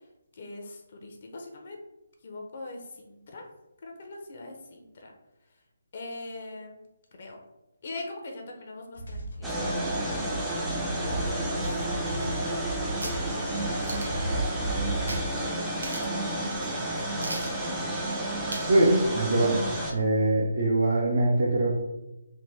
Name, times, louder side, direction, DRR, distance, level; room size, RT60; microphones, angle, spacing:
voice 1, 0.3-1.8 2.2-3.5 3.8-5.1 5.9-7.4 7.8-10.3 10.7-11.5 12.9-16.3 16.6-17.0, left 2 dB, 50° left, 1 dB, 0.6 m, -43 dB
sound 1, 9.0-15.3, right 1 dB, 75° left, 0.9 m, -34 dB
sound 2, 9.4-19.9, right 1 dB, 5° right, 0.4 m, -31 dB
sound 3, 11.6-12.6 13.0-13.2 13.8-14.3 15.1-15.2 15.5-15.6 15.8-16.2 16.6-16.7 17.2-17.6 18.5-18.8 19.1-19.2, right 1 dB, 90° right, 0.8 m, -38 dB
voice 2, 18.6-19.6 19.9-21.7, right 2 dB, 60° right, -3 dB, 0.7 m, -23 dB
3.3 x 2.2 x 3.2 m, 0.95 s
hypercardioid pair, 155°, 0 cm